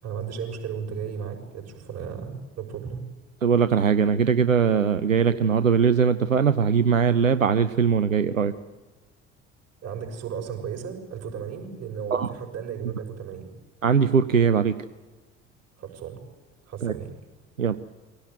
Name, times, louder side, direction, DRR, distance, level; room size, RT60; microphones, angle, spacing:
voice 1, 0.0-3.1 9.8-13.5 15.8-16.2 16.7-17.1, right 7 dB, 40° right, 2 dB, 5.8 m, -34 dB
voice 2, 3.4-8.5 12.1-12.3 13.8-14.7 16.8-16.9 17.6-17.8, right 6 dB, 85° right, 13 dB, 0.7 m, -21 dB
24.0 x 17.0 x 9.3 m, 1.2 s
figure-of-eight pair, 60°, 39 cm